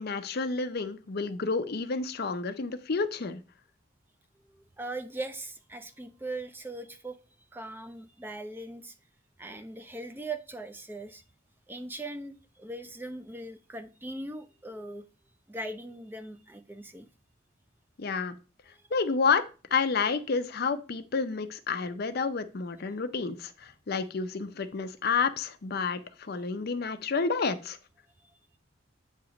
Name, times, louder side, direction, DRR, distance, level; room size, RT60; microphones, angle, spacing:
voice 1, 0.0-3.4 18.0-18.4 18.9-19.5 19.7-27.8, left 4 dB, 55° left, 0.6 m, -30 dB
voice 2, 4.5-7.2 7.5-8.9 9.4-11.2 11.7-15.0 15.5-17.1, right 2 dB, 10° right, 0.4 m, -40 dB
8.4 x 2.9 x 5.0 m
head